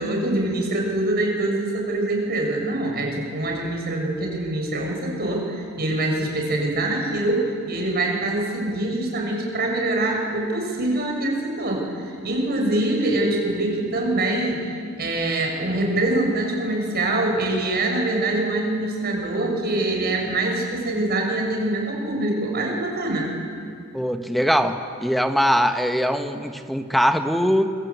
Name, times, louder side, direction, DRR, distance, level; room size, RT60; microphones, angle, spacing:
voice 1, 0.0-23.3, right 2 dB, 50° right, 1 dB, 6.4 m, -24 dB
voice 2, 23.9-27.7, equal, ahead, 6 dB, 1.4 m, -21 dB
26.0 x 25.0 x 8.3 m, 2.3 s
head